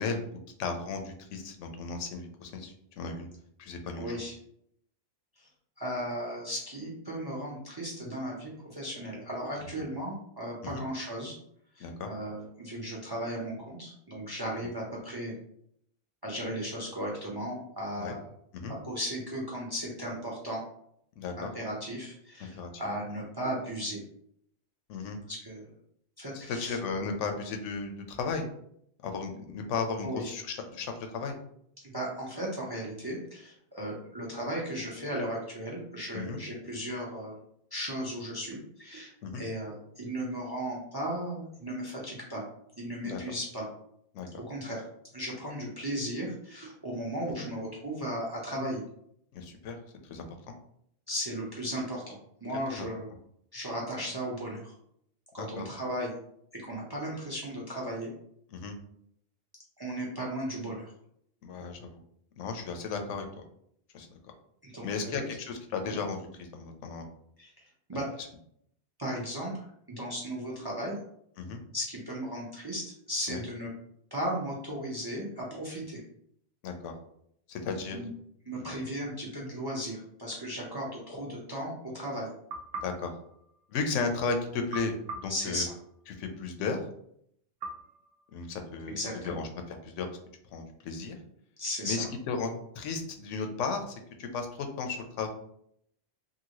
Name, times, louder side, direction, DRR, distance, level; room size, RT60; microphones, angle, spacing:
voice 1, 0.0-3.3 3.6-4.2 10.7-10.8 11.8-12.1 18.0-18.2 18.5-18.7 21.2-21.5 22.6-22.7 24.9-25.2 26.5-28.5 29.0-31.4 36.1-36.4 39.2-39.4 43.0-43.2 44.1-44.3 47.4-47.5 49.3-49.8 50.0-50.5 52.7-52.9 55.4-55.6 58.5-58.8 61.4-62.0 62.4-63.4 63.9-64.2 64.8-67.1 71.4-71.6 73.3-73.4 76.6-76.9 77.5-78.0 78.6-78.8 82.8-83.1 83.7-85.7 86.2-86.8 88.3-90.1 90.5-91.2 91.8-92.5 92.7-95.3, left 4 dB, 90° left, 5 dB, 0.9 m, -35 dB
voice 2, 4.0-4.3 5.4-5.5 5.8-11.4 11.7-15.3 16.2-18.2 18.7-20.6 21.4-24.0 25.3-25.8 26.2-26.8 30.0-30.3 31.8-37.3 37.7-42.4 42.8-43.7 44.4-44.8 45.1-48.8 51.1-53.1 53.5-54.7 55.3-56.1 56.5-58.1 59.8-60.9 64.6-65.3 65.8-66.0 67.4-68.1 69.0-71.0 71.7-73.7 74.1-76.0 77.9-78.1 78.5-82.3 85.3-85.7 88.9-89.3 91.6-92.1, equal, 35° right, -2 dB, 0.4 m, -36 dB
sound 1, 82.5-84.1 84.7-86.3 87.6-89.0, right 2 dB, 85° right, 1.0 m, -44 dB
2.7 x 2.6 x 2.9 m, 0.70 s
omnidirectional pair, 1.2 m